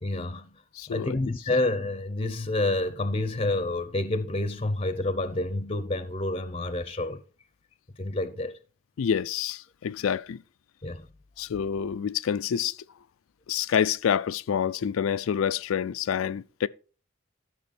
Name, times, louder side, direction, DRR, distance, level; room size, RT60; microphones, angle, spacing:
voice 1, 0.0-0.6 0.9-7.2 8.0-8.6 10.8-11.1, left 2 dB, 30° left, 0.7 m, -28 dB
voice 2, 0.7-1.2 9.0-10.4 11.4-12.8 13.5-16.7, left 8 dB, 85° left, 0.4 m, -27 dB
12.5 x 6.2 x 4.2 m
head